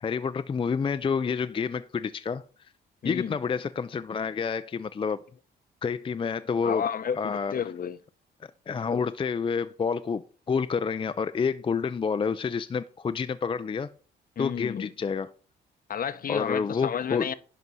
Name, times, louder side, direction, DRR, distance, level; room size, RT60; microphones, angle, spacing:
voice 1, 0.0-2.4 3.0-5.2 5.8-6.8 7.2-7.5 8.7-13.9 14.4-15.3 16.3-17.3, left 5 dB, 25° left, 0.4 m, -28 dB
voice 2, 3.0-3.4 6.6-8.0 14.4-14.9 15.9-17.3, left 8 dB, 45° left, 0.8 m, -31 dB
11.0 x 3.9 x 6.1 m
cardioid pair, 90°, 20 cm